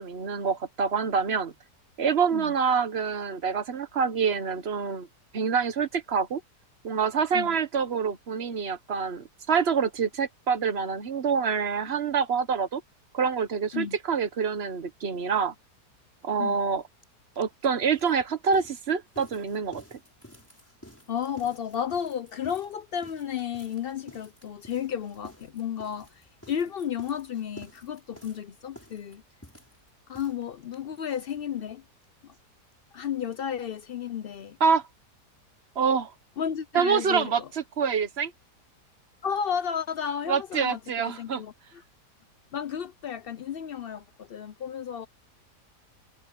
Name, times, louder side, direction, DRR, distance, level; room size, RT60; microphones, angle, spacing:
voice 1, 0.0-1.5 2.0-5.1 5.3-6.4 6.8-12.8 13.1-15.5 16.2-16.8 17.4-20.0 34.6-34.8 35.8-36.1 36.7-37.4 37.8-38.3 40.3-41.4, right 6 dB, 40° right, 1.2 m, -26 dB
sound 1, 17.0-17.1 17.4-31.7 32.0-32.1 32.3-32.4 32.7-32.8, equal, 10° left, 6.4 m, -52 dB
voice 2, 21.1-29.2 30.1-31.8 32.2-32.3 32.9-34.6 36.4-37.5 39.2-41.8 42.5-45.1, left 8 dB, 65° left, 0.5 m, -33 dB
omnidirectional pair, 1.8 m